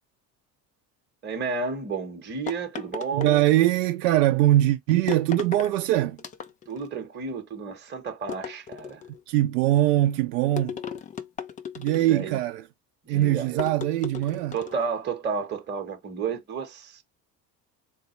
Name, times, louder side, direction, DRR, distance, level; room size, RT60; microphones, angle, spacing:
voice 1, 1.2-3.4 6.7-9.0 12.0-12.4 13.1-13.6 14.5-17.0, right 5 dB, 20° right, 1.0 m, -32 dB
sound 1, 2.5-3.8 5.1-5.7 6.2-6.9 8.3-9.2 10.6-12.3 13.6-14.9, left 8 dB, 20° left, 0.3 m, -36 dB
voice 2, 3.1-6.2 9.3-10.8 11.8-12.6 13.1-14.6, right 14 dB, 70° right, 0.6 m, -22 dB
4.1 x 2.1 x 3.0 m
figure-of-eight pair, 60°, 49 cm